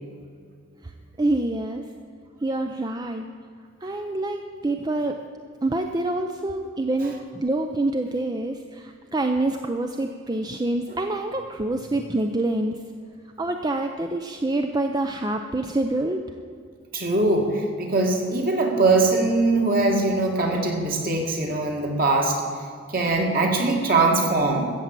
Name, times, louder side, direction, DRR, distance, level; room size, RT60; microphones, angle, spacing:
voice 1, 1.2-1.9 2.4-3.3 3.8-5.2 5.6-12.8 13.4-16.2, right 2 dB, 20° right, 5 dB, 0.5 m, -26 dB
voice 2, 16.9-22.4 22.9-24.7, right 2 dB, 45° right, 1 dB, 2.2 m, -21 dB
14.0 x 8.4 x 7.5 m, 2.2 s
head